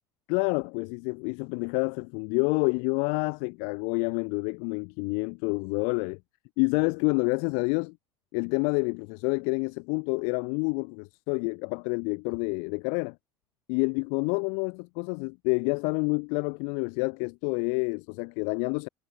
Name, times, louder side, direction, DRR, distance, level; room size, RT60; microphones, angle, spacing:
voice 1, 0.3-6.2 6.6-7.9 8.3-13.1 13.7-18.9, left 40 dB or more, 50° left, 0.5 m, -28 dB
figure-of-eight pair, 70°, 13 cm